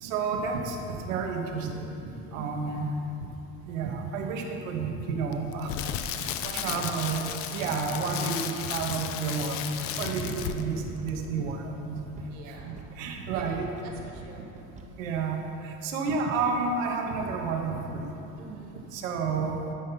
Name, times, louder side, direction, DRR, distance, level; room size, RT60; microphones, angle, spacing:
voice 1, 0.0-1.9 2.3-2.9 3.6-5.7 6.2-6.3 6.6-12.0 12.5-13.7 15.0-18.1 18.9-19.6, right 4 dB, 85° right, 2 dB, 1.2 m, -31 dB
voice 2, 2.1-3.0 6.4-7.9 12.3-12.8 13.3-13.6 13.8-15.1 18.4-18.9, right 4 dB, 60° right, 1 dB, 1.6 m, -47 dB
Crackle, 5.3-10.8 11.1-11.3, left 10 dB, 40° left, 0.4 m, -34 dB
sound 1, 10.2-15.0, right 4 dB, 20° right, 0.7 m, -46 dB
13.0 x 5.4 x 4.0 m, 3.0 s
supercardioid pair, 140°, 38 cm